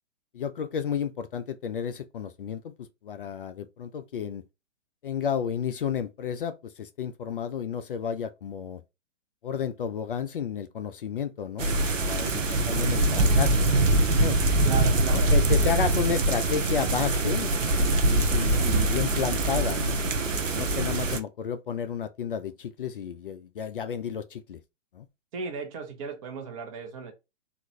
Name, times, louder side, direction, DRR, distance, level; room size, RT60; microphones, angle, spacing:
voice 1, 0.3-2.7 3.0-4.4 5.0-8.8 9.4-11.7 12.0-13.8 14.2-14.4 15.1-17.5 18.0-20.0 20.5-24.6 24.9-25.1, left 7 dB, 45° left, 0.4 m, -32 dB
sound 1, 11.6-21.2, right 2 dB, 90° right, 0.7 m, -23 dB
voice 2, 14.6-15.8 25.3-27.1, right 5 dB, 25° right, 0.7 m, -36 dB
3.7 x 2.4 x 3.1 m
figure-of-eight pair, 125°, 37 cm